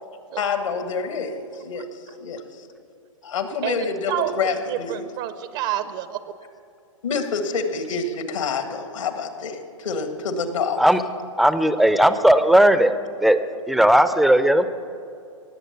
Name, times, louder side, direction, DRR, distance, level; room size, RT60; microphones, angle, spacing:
voice 1, 0.4-2.6 3.2-5.0 7.0-10.8, left 5 dB, 70° left, 7 dB, 1.8 m, -27 dB
voice 2, 3.6-6.5, right 11 dB, 40° right, 12 dB, 0.7 m, -29 dB
voice 3, 11.4-12.9 13.2-13.4 13.7-14.7, right 1 dB, ahead, 11 dB, 0.5 m, -16 dB
18.5 x 7.7 x 6.9 m, 2.5 s
figure-of-eight pair, 115°, 17 cm